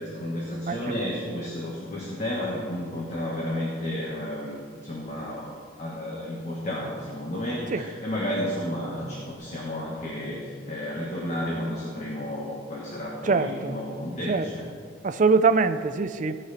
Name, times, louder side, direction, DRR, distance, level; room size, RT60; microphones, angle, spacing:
voice 1, 0.0-5.5 5.8-14.6, left 1 dB, 35° left, -5 dB, 1.5 m, -32 dB
voice 2, 0.7-1.4 7.7-7.9 13.2-13.8 14.3-14.5 15.0-16.4, right 4 dB, 40° right, 10 dB, 0.4 m, -24 dB
17.0 x 5.8 x 4.3 m, 2.2 s
head